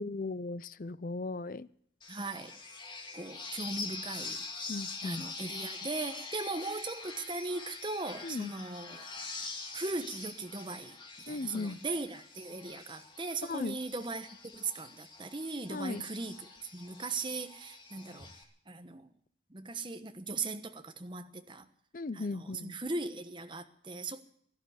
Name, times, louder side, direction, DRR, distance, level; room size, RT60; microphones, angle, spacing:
voice 1, 0.0-1.7 4.7-5.3 8.2-8.5 11.3-11.8 13.4-13.8 15.7-16.0 21.9-22.8, left 3 dB, 45° left, 0.5 m, -37 dB
Tira borboto, 2.0-18.4, left 4 dB, 25° left, 2.0 m, -45 dB
voice 2, 2.1-2.5 3.1-4.4 5.0-9.1 9.7-11.0 11.3-18.3 18.7-19.1 19.5-21.7 22.1-24.2, right 3 dB, 25° right, 1.1 m, -38 dB
16.5 x 12.0 x 7.1 m
head